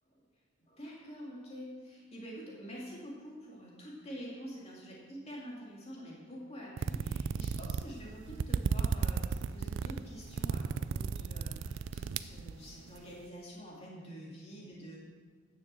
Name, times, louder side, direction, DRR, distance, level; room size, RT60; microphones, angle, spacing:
voice 1, 0.7-15.0, equal, 30° left, -4 dB, 2.6 m, -47 dB
sound 1, 6.8-13.0, right 5 dB, 65° right, 0.3 m, -34 dB
9.7 x 6.9 x 7.6 m, 1.5 s
head